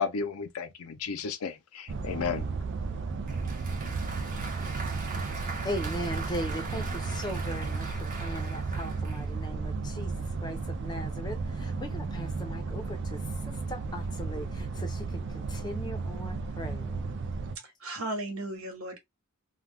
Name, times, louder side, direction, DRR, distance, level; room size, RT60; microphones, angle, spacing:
voice 1, 0.0-2.5, left 6 dB, 80° left, 0.5 m, -33 dB
sound 1, 1.9-17.6, right 4 dB, 55° right, 0.4 m, -34 dB
Applause, 3.3-9.3, right 3 dB, 40° right, 0.8 m, -41 dB
voice 2, 5.6-17.1, equal, 20° left, 0.6 m, -39 dB
voice 3, 17.6-19.0, right 1 dB, 70° right, 1.0 m, -36 dB
2.3 x 2.2 x 3.4 m
head